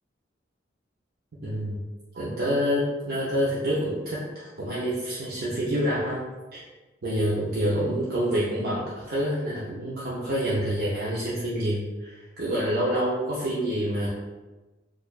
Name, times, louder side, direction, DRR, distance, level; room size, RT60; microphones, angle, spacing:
voice 1, 1.4-1.8 2.1-6.2 6.5-6.6 7.0-14.1, equal, 55° right, -8 dB, 0.6 m, -27 dB
4.4 x 2.4 x 2.3 m, 1.1 s
head